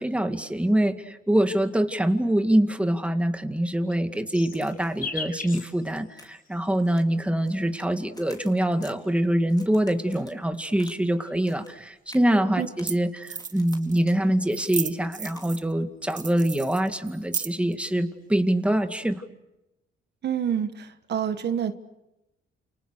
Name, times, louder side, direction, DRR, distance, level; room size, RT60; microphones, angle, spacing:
voice 1, 0.0-19.2, right 1 dB, 5° right, 7 dB, 2.2 m, -24 dB
sound 1, 3.6-7.0 8.0-9.3 10.2-12.0 13.4-15.6 16.0-16.5 16.8-17.9 18.2-18.8, left 5 dB, 45° left, 4.6 m, -43 dB
Crack, 4.5-5.1 5.5-5.8 6.2-6.5 6.8-7.9 8.1-9.0 9.5-11.0 11.2-11.8 12.1-12.3 12.8-13.0 13.4-13.8 14.1-14.2 14.6-14.7 15.2-15.4, left 2 dB, 20° left, 4.3 m, -51 dB
sound 2, 11.8-11.9 12.6-12.7 12.9-13.0 13.2-14.0 14.5-15.7 16.1-17.7, right 6 dB, 40° right, 1.3 m, -34 dB
voice 2, 20.2-21.7, right 9 dB, 60° right, 10 dB, 1.5 m, -27 dB
29.5 x 29.0 x 6.6 m, 0.94 s
cardioid pair, 90°, 20 cm